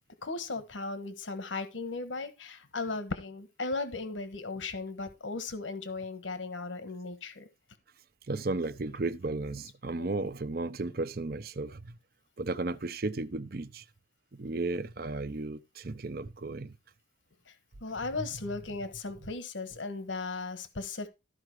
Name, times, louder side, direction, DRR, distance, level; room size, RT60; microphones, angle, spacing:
voice 1, 0.2-7.4 10.0-10.1 17.8-21.1, left 3 dB, 90° left, 1.3 m, -36 dB
voice 2, 8.3-11.9 12.4-13.8 14.4-16.7, right 3 dB, 50° right, 0.6 m, -34 dB
13.5 x 4.9 x 4.7 m
head